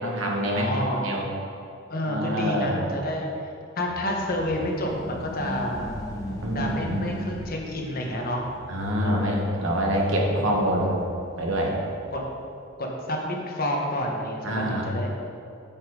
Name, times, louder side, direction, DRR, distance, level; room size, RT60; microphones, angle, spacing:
voice 1, 0.0-0.7 1.0-1.3 2.1-2.9 6.4-7.1 8.7-11.0 11.4-11.7 14.4-14.9, equal, 70° right, -1 dB, 1.4 m, -25 dB
voice 2, 0.5-1.2 1.9-3.3 3.8-5.9 6.5-8.4 9.0-9.3 10.4-10.7 12.1-12.2 12.8-15.2, left 1 dB, 45° left, 0 dB, 1.2 m, -29 dB
sound 1, 3.8-12.6, equal, 15° left, 1.4 m, -40 dB
8.7 x 5.3 x 4.8 m, 2.6 s
head